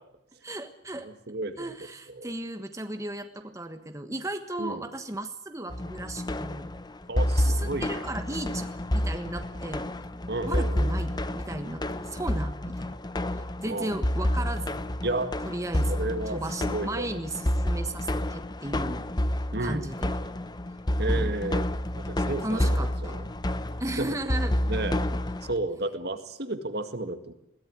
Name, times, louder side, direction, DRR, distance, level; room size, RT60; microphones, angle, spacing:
voice 1, 0.4-1.1 1.6-6.7 7.4-9.9 10.5-13.0 13.3-14.9 15.5-19.0 19.6-20.2 21.1-21.4 22.4-23.2 23.8-24.5, right 1 dB, 15° right, 7 dB, 1.3 m, -35 dB
voice 2, 1.0-1.7 2.1-2.3 4.6-4.8 7.1-8.0 10.3-11.0 13.7-13.9 15.0-15.3 15.9-17.2 19.5-19.9 21.0-21.7 22.0-22.8 23.0-23.3 24.0-24.1 24.7-25.0 25.5-27.3, right 2 dB, 55° right, 8 dB, 1.9 m, -32 dB
sound 1, 5.7-25.6, left 1 dB, 20° left, 0.9 m, -29 dB
21.5 x 17.0 x 9.5 m, 0.81 s
head